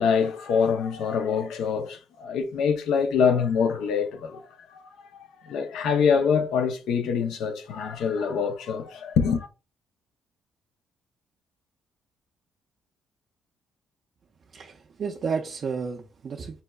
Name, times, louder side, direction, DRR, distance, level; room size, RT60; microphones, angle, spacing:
voice 1, 0.0-4.4 4.7-9.5, left 6 dB, 85° left, 0.5 m, -25 dB
voice 2, 14.5-16.6, right 5 dB, 50° right, 0.4 m, -32 dB
5.3 x 2.1 x 2.2 m
cardioid pair, 90°, 0 cm